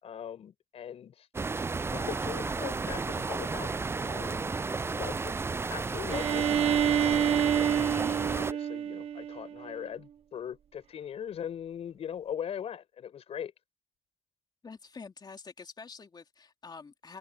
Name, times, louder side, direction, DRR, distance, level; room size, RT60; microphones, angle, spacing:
voice 1, 0.0-1.3 1.9-3.7 4.0-4.5 4.9-5.3 5.7-6.5 6.8-7.4 7.8-13.5, left 9 dB, 70° left, 6.1 m, -40 dB
sound 1, 1.3-8.5, right 4 dB, 25° right, 0.4 m, -33 dB
Bowed string instrument, 6.1-9.8, right 9 dB, 70° right, 0.8 m, -28 dB
voice 2, 14.6-17.2, left 5 dB, 40° left, 3.2 m, -47 dB
open air
cardioid pair, 75°, 11 cm